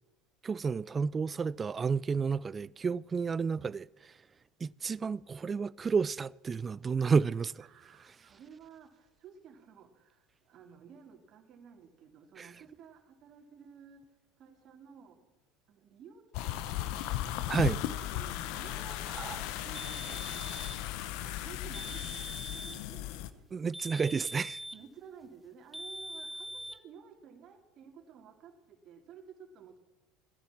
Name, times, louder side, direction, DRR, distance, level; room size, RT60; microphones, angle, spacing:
voice 1, 0.4-4.1 4.6-7.6 12.4-12.5 17.5-17.8 19.1-19.6 23.5-24.6, right 5 dB, 25° right, 0.4 m, -31 dB
voice 2, 7.6-14.0 14.4-15.3 15.7-19.3 19.6-20.7 21.0-23.4 24.7-29.8, right 7 dB, 50° right, 2.5 m, -54 dB
sound 1, 16.3-23.3, left 13 dB, 65° left, 0.9 m, -36 dB
sound 2, 19.7-20.9 21.7-22.9 23.7-24.9 25.7-26.8, equal, ahead, 0.9 m, -43 dB
15.0 x 10.0 x 7.3 m
hypercardioid pair, 80°, 0 cm